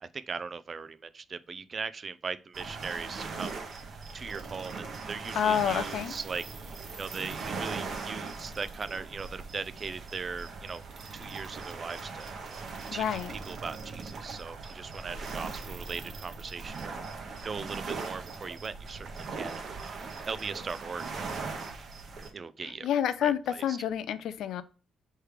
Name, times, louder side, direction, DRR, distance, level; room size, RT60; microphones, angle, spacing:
voice 1, 0.0-3.6 4.1-6.4 7.0-10.8 11.1-12.3 12.9-20.0 20.3-21.3 22.3-22.9 23.2-23.8, right 5 dB, 40° right, 0.3 m, -39 dB
sound 1, 2.5-22.3, right 4 dB, 55° right, 0.9 m, -40 dB
voice 2, 5.3-6.1 12.9-13.3 22.6-24.6, left 9 dB, 75° left, 0.4 m, -29 dB
3.3 x 3.2 x 4.8 m
cardioid pair, 90°, 0 cm